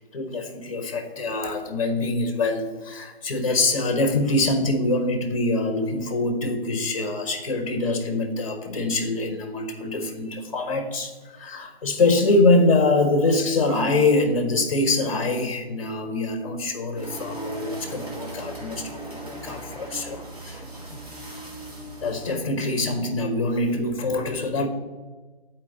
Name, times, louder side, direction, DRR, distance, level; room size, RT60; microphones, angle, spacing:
voice 1, 0.0-20.6 20.9-21.0 22.0-24.7, left 2 dB, 35° left, 6 dB, 0.9 m, -24 dB
sound 1, 17.0-22.4, right 2 dB, 35° right, 1.9 m, -38 dB
9.3 x 4.4 x 3.8 m, 1.3 s
hypercardioid pair, 170°, 31 cm